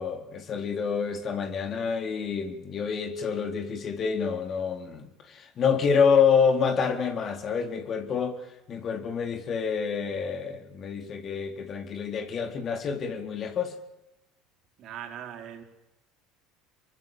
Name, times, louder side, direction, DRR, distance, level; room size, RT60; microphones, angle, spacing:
voice 1, 0.0-8.4 8.7-13.8, left 6 dB, 45° left, 4.0 m, -27 dB
voice 2, 14.8-15.6, right 9 dB, 55° right, 4.6 m, -40 dB
28.0 x 23.0 x 7.7 m
hypercardioid pair, 75°, 0 cm